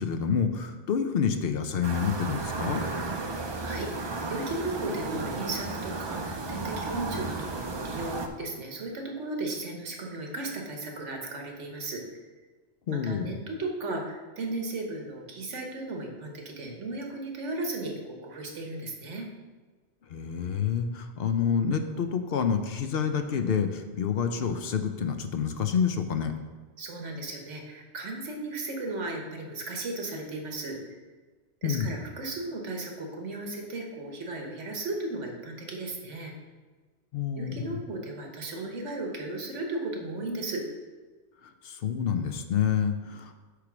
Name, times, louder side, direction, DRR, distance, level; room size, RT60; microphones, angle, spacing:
voice 1, 0.0-2.8 12.9-13.3 20.1-26.3 31.6-31.9 37.1-37.5 41.6-43.3, left 7 dB, 60° left, 7 dB, 0.8 m, -28 dB
sound 1, 1.8-8.3, right 3 dB, 40° right, 0.4 m, -33 dB
voice 2, 3.6-12.0 12.9-19.3 26.8-30.8 31.6-36.3 37.3-40.6, right 2 dB, 90° right, 1 dB, 1.5 m, -35 dB
8.3 x 3.2 x 6.0 m, 1.4 s
omnidirectional pair, 1.2 m